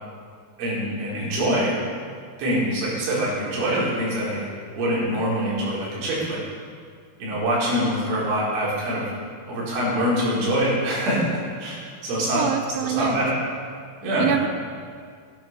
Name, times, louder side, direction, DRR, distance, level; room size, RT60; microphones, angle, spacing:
voice 1, 0.6-1.7 2.4-4.5 4.8-6.4 7.2-9.1 9.5-11.2 11.6-12.4 12.8-13.3 14.0-14.3, equal, 65° right, -7 dB, 6.9 m, -24 dB
voice 2, 12.3-13.2 14.2-14.5, right 11 dB, 85° right, 7 dB, 2.9 m, -25 dB
16.0 x 12.0 x 6.2 m, 2.1 s
omnidirectional pair, 5.9 m